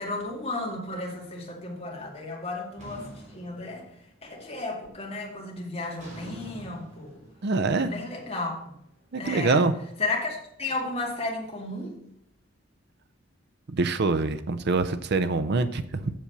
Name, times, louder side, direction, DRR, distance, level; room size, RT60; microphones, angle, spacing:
voice 1, 0.0-3.9 4.2-7.2 7.7-8.7 9.2-9.7 10.0-11.9, left 2 dB, 30° left, -1 dB, 2.4 m, -33 dB
sound 1, 2.8-4.3 4.7-5.1 6.0-9.0, right 1 dB, 40° right, 3.7 m, -47 dB
voice 2, 7.4-7.9 9.1-9.7 13.7-16.1, right 3 dB, 60° right, 11 dB, 0.5 m, -25 dB
7.5 x 6.8 x 6.7 m, 0.73 s
head